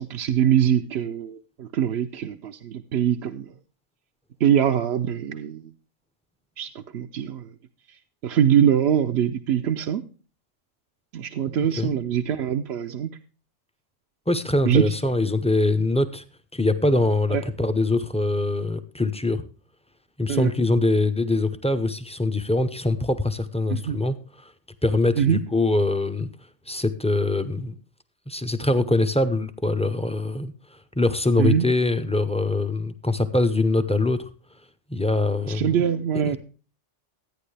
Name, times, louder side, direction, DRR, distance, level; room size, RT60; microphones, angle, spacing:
voice 1, 0.0-3.5 4.4-5.7 6.6-7.5 7.9-8.0 8.2-10.0 11.1-13.1 14.6-14.9 17.3-17.4 20.3-20.5 23.7-24.0 25.2-25.4 31.4-31.7 35.5-36.4, right 9 dB, 65° right, 5 dB, 0.9 m, -23 dB
voice 2, 11.5-12.0 14.3-16.2 16.5-19.4 20.2-24.2 24.4-24.5 24.8-26.3 26.7-27.7 28.3-30.5 31.0-34.3 34.9-35.7 36.3-36.4, left 2 dB, 5° left, 8 dB, 0.6 m, -23 dB
13.5 x 9.4 x 3.3 m, 0.36 s
omnidirectional pair, 1.3 m